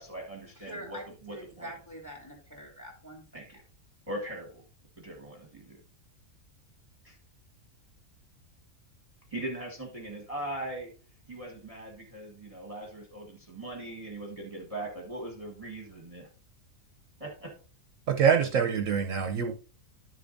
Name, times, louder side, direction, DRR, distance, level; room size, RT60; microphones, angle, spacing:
voice 1, 0.0-1.7 3.3-3.6 4.1-4.6 5.0-5.8 7.0-7.2 9.3-10.9 11.3-16.3 17.2-17.5, right 1 dB, 25° right, 1.4 m, -40 dB
voice 2, 0.6-3.2, equal, 10° left, 2.4 m, -44 dB
voice 3, 18.1-19.5, right 7 dB, 65° right, 1.0 m, -25 dB
10.5 x 6.9 x 2.6 m
omnidirectional pair, 1.5 m